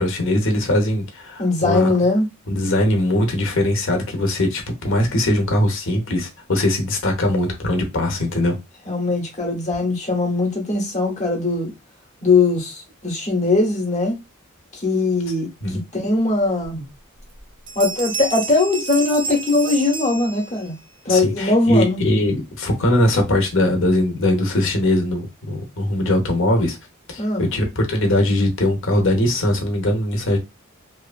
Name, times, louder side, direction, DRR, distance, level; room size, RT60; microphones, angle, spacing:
voice 1, 0.0-1.9 2.5-8.5 15.6-15.8 21.1-26.8 27.1-30.4, left 1 dB, 60° left, 0.9 m, -20 dB
voice 2, 1.4-2.3 8.9-11.7 12.2-14.2 14.7-16.8 17.7-20.7 21.0-22.0 27.2-27.5, left 3 dB, 30° left, 1.0 m, -20 dB
sound 1, 16.6-16.7 17.2-17.4 17.7-20.8, right 4 dB, 25° right, 0.4 m, -31 dB
2.9 x 2.4 x 2.3 m
head